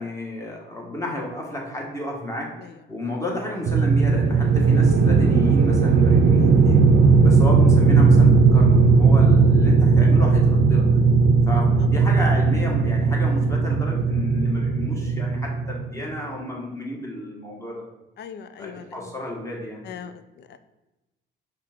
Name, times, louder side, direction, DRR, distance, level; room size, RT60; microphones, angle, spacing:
voice 1, 0.0-2.5 2.9-6.8 7.2-10.9 11.5-17.8 18.6-19.8, left 1 dB, 15° left, -2 dB, 1.3 m, -31 dB
sound 1, 3.7-15.9, right 4 dB, 60° right, 0.5 m, -17 dB
voice 2, 18.2-19.1 19.8-20.6, left 7 dB, 60° left, 11 dB, 0.4 m, -40 dB
5.4 x 2.5 x 3.5 m, 1.0 s
cardioid pair, 90°, 20 cm